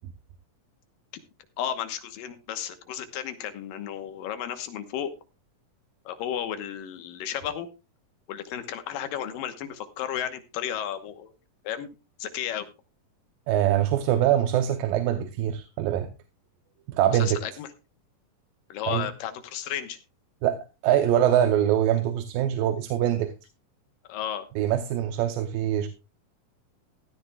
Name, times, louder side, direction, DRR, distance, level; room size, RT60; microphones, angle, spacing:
voice 1, 1.6-5.1 6.1-7.7 8.3-11.3 11.6-11.9 12.2-12.7 17.0-17.7 18.7-20.0 24.1-24.5, left 10 dB, 90° left, 2.9 m, -33 dB
voice 2, 13.5-16.1 16.9-17.4 18.9-19.1 20.4-20.6 20.8-23.3 24.6-25.9, right 11 dB, 90° right, 2.6 m, -23 dB
15.5 x 13.5 x 2.3 m
omnidirectional pair, 3.9 m